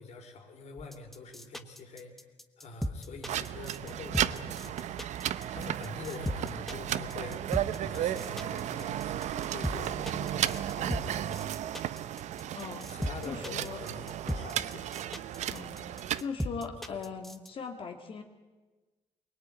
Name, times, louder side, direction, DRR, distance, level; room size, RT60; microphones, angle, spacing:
voice 1, 0.0-2.2 2.6-11.5 12.9-14.9 16.9-17.0, left 3 dB, 70° left, 3 dB, 4.2 m, -45 dB
sound 1, 0.8-17.5, equal, ahead, 1.2 m, -36 dB
sound 2, 3.2-16.2, right 11 dB, 85° right, 0.7 m, -34 dB
voice 2, 12.6-12.9 13.3-13.8 15.5-15.9 16.2-18.2, left 5 dB, 50° left, 4 dB, 2.0 m, -39 dB
23.5 x 21.0 x 9.0 m, 1.2 s
cardioid pair, 135°, 12 cm